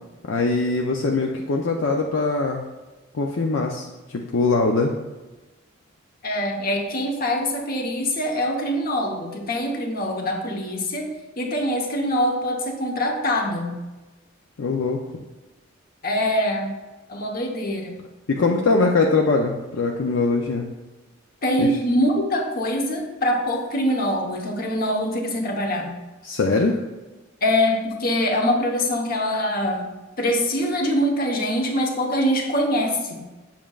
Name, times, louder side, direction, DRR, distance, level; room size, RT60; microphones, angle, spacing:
voice 1, 0.2-2.7 3.1-4.9 14.6-15.0 18.3-20.7 21.6-21.8 26.2-26.8, left 3 dB, 70° left, 1 dB, 0.5 m, -22 dB
voice 2, 6.2-11.1 11.4-13.7 16.0-16.7 17.1-18.0 21.4-25.9 27.4-29.9 30.2-33.2, equal, 45° left, 1 dB, 1.0 m, -24 dB
7.4 x 7.2 x 2.4 m, 1.1 s
head